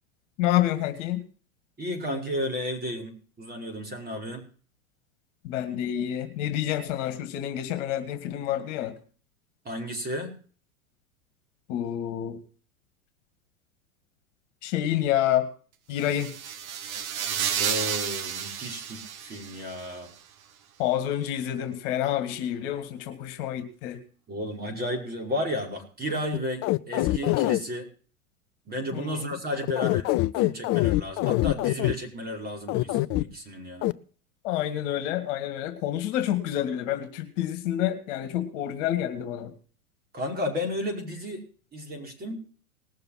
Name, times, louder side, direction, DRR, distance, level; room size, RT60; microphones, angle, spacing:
voice 1, 0.4-1.2 5.4-9.0 11.7-12.4 14.6-15.5 15.9-16.3 20.8-24.0 28.9-29.3 34.4-39.5, left 11 dB, 55° left, 10 dB, 1.9 m, -28 dB
voice 2, 1.8-4.4 9.6-10.3 17.6-20.1 24.3-27.9 28.6-33.9 40.1-41.4 41.7-42.4, left 1 dB, 20° right, 3 dB, 5.1 m, -33 dB
sound 1, 16.0-19.9, right 8 dB, 70° right, 1.6 m, -31 dB
sound 2, 26.3-27.6 29.6-31.9 32.7-33.2 33.8-33.9, left 18 dB, 35° left, 0.5 m, -24 dB
19.5 x 6.8 x 5.8 m, 0.42 s
hypercardioid pair, 100°, 44 cm